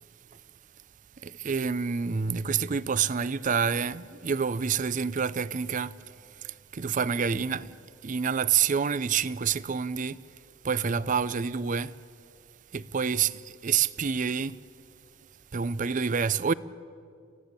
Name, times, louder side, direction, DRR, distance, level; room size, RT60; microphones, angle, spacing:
voice 1, 1.2-5.9 6.7-7.7 8.0-10.2 10.6-11.9 12.7-13.3 13.6-14.5 15.5-16.5, right 6 dB, 40° right, 0.5 m, -27 dB
30.0 x 15.0 x 8.2 m
head